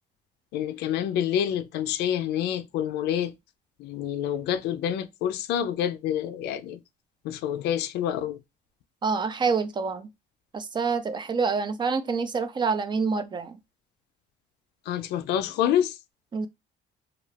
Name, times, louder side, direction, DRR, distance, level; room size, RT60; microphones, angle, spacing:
voice 1, 0.5-3.4 3.8-6.8 7.2-8.4 14.9-16.0, left 10 dB, 80° left, 0.4 m, -27 dB
voice 2, 9.0-10.1 10.5-13.6 16.3-16.5, right 5 dB, 25° right, 0.4 m, -27 dB
2.4 x 2.4 x 3.2 m
cardioid pair, 110°, 17 cm